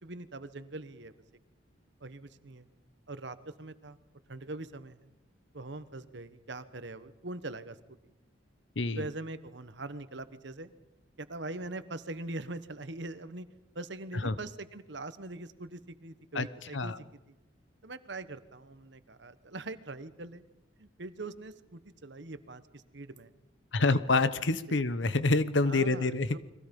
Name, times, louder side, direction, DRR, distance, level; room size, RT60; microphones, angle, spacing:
voice 1, 0.0-1.1 2.0-2.7 3.1-4.0 4.3-5.1 5.5-7.8 8.0-8.1 9.0-10.7 11.2-13.5 13.7-17.3 17.8-20.4 20.8-23.3 23.8-24.0 24.7-24.9 25.6-26.4, right 2 dB, 65° right, 12 dB, 1.2 m, -42 dB
voice 2, 23.7-26.4, left 3 dB, 75° left, 14 dB, 1.1 m, -27 dB
29.5 x 22.5 x 5.4 m, 1.0 s
head